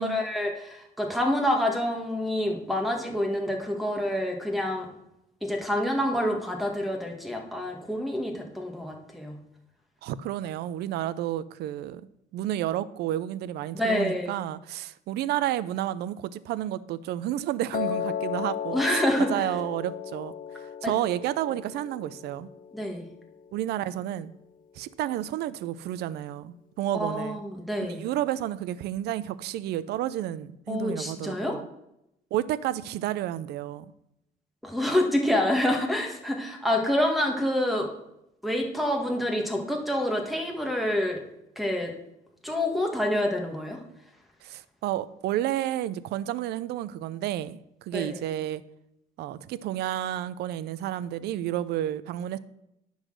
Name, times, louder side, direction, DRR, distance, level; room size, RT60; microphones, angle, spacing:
voice 1, 0.0-4.9 5.4-9.4 13.7-14.3 18.7-19.5 20.8-20.9 22.7-23.0 26.9-28.0 30.7-31.5 34.6-37.9 38.4-41.2 41.5-41.9 42.4-43.8 47.9-48.2, left 1 dB, ahead, 0 dB, 1.6 m, -27 dB
voice 2, 10.0-12.1 12.3-19.0 19.3-22.5 23.5-24.3 24.8-27.4 27.9-31.7 32.3-33.9 44.4-48.6 49.2-52.4, right 12 dB, 75° right, 17 dB, 0.5 m, -31 dB
Piano, 17.7-23.9, left 9 dB, 55° left, 0.6 m, -35 dB
9.9 x 4.0 x 6.4 m, 0.83 s
cardioid pair, 110°, 17 cm